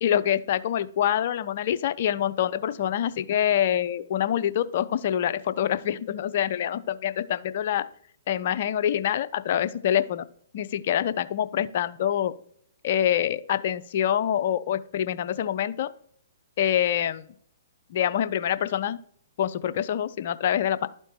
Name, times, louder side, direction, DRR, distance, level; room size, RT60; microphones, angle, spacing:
voice 1, 0.0-7.9 8.3-10.3 10.5-12.3 12.8-15.9 16.6-17.2 17.9-19.0 19.4-20.9, left 10 dB, 50° left, 13 dB, 0.5 m, -25 dB
12.0 x 4.4 x 2.9 m, 0.63 s
figure-of-eight pair, 120°, 0 cm